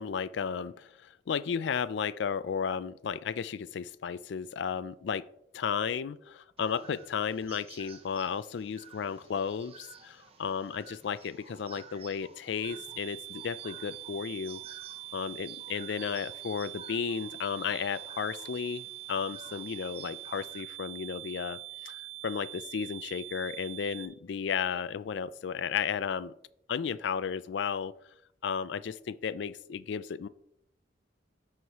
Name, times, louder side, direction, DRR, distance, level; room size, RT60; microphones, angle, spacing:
voice 1, 0.0-5.2 5.5-14.6 15.1-21.6 21.8-26.3 26.7-27.9 28.4-30.3, left 7 dB, 70° left, 15 dB, 0.4 m, -34 dB
sound 1, 6.6-20.6, right 5 dB, 35° right, 0.8 m, -53 dB
sound 2, 12.6-24.1, right 18 dB, 60° right, 1.2 m, -44 dB
13.0 x 4.8 x 3.0 m, 0.73 s
head